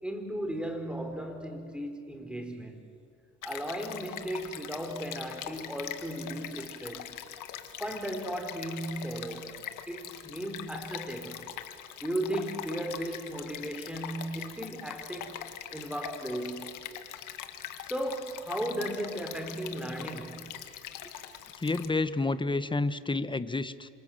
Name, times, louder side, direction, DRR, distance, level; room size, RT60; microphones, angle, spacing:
voice 1, 0.0-2.8 3.4-7.1 7.8-9.6 9.9-11.4 12.0-15.4 15.7-16.8 17.8-20.6 21.0-21.1, right 1 dB, 5° right, 4.5 m, -36 dB
Stream, 3.4-21.9, left 10 dB, 90° left, 1.8 m, -43 dB
voice 2, 21.6-23.9, left 3 dB, 15° left, 1.2 m, -29 dB
28.5 x 26.0 x 7.9 m
cardioid pair, 90°, 30 cm